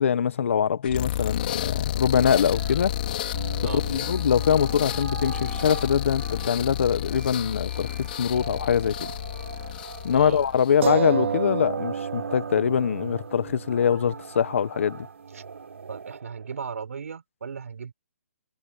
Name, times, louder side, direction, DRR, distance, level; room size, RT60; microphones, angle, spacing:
voice 1, 0.0-2.9 3.7-9.1 10.0-15.1, left 8 dB, 55° left, 1.3 m, -23 dB
sound 1, 0.8-10.8, left 13 dB, 35° left, 3.7 m, -31 dB
sound 2, 2.2-16.6, right 5 dB, 85° right, 6.2 m, -42 dB
sound 3, 3.3-7.2 7.5-7.6 10.8-16.0, right 7 dB, 55° right, 2.6 m, -34 dB
voice 2, 10.1-10.4 15.3-15.4 15.9-17.9, right 6 dB, 70° right, 4.3 m, -36 dB
hypercardioid pair, 165°, 8 cm